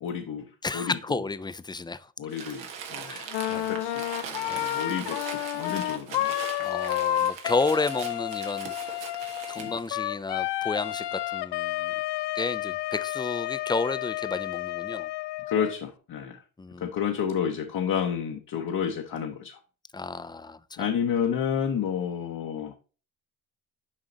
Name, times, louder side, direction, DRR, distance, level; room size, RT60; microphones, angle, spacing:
voice 1, 0.0-0.4 0.7-1.2 2.2-3.2 3.5-6.3 9.6-9.7 15.5-16.4 16.8-19.6 20.8-22.7, left 8 dB, 55° left, 1.0 m, -30 dB
voice 2, 0.6-2.1 3.1-3.7 4.5-4.7 6.6-9.1 9.5-11.9 12.3-15.1 16.6-16.9 19.9-20.9, left 3 dB, 10° left, 0.4 m, -32 dB
Crumpling crinkling, 2.3-9.9, right 7 dB, 85° right, 1.5 m, -41 dB
Wind instrument woodwind instrument, 3.3-15.8, left 14 dB, 70° left, 0.6 m, -31 dB
7.5 x 4.9 x 3.9 m
supercardioid pair, 70°, 43 cm